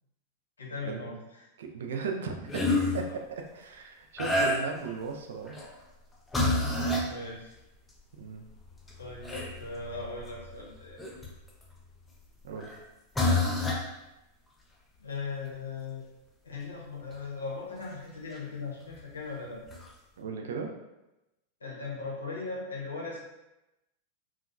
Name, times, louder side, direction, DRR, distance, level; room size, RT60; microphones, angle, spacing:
voice 1, 0.6-1.5 3.0-3.1 6.6-7.6 9.0-11.0 15.0-16.0 16.4-19.6 21.6-23.2, left 4 dB, 75° left, -3 dB, 0.7 m, -39 dB
voice 2, 1.6-5.6 8.2-8.4 12.4-12.7 20.2-20.7, right 5 dB, 60° right, 3 dB, 0.3 m, -36 dB
sound 1, 2.5-3.0 4.2-4.9 5.5-5.7 6.3-7.1 8.0-8.1 8.5-11.6 12.6-12.8 13.1-13.9 17.1-17.2 18.9-19.0 19.7-19.9, left 2 dB, 10° left, 0.4 m, -29 dB
2.7 x 2.3 x 2.3 m, 0.94 s
figure-of-eight pair, 90°, 0 cm